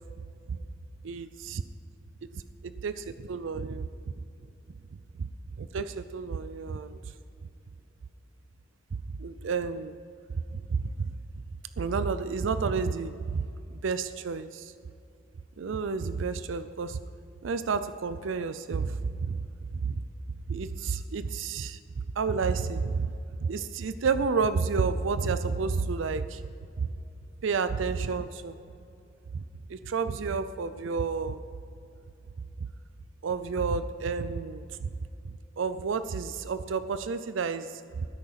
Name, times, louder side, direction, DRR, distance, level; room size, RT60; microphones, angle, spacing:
voice 1, 2.6-3.8 5.2-5.3 5.6-7.0 9.2-10.0 10.5-10.9 11.8-13.4 13.8-14.7 15.6-17.0 17.4-19.4 19.8-20.0 20.5-21.8 22.2-23.1 23.4-26.4 26.8-26.9 27.4-28.6 29.3-29.4 29.7-31.4 33.2-34.9 35.6-38.1, right 5 dB, 85° right, 12 dB, 0.5 m, -30 dB
15.0 x 8.7 x 5.7 m, 2.6 s
head